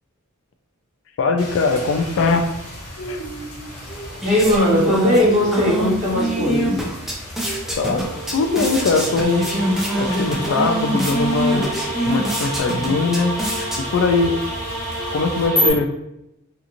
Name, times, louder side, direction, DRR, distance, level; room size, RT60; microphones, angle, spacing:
voice 1, 1.2-2.5 3.1-3.2 7.8-8.0 8.3-9.5 10.0-11.7 12.0-13.3 13.8-14.4 15.1-15.9, left 4 dB, 65° left, 6 dB, 0.3 m, -20 dB
Rain, 1.4-15.5, left 1 dB, 85° left, 0.9 m, -33 dB
sound 1, 3.7-14.3, right 1 dB, ahead, 0.4 m, -25 dB
voice 2, 4.2-6.8, equal, 35° right, -6 dB, 1.1 m, -18 dB
sound 2, 7.6-15.7, equal, 15° left, 0.8 m, -28 dB
2.8 x 2.5 x 2.5 m, 0.85 s
head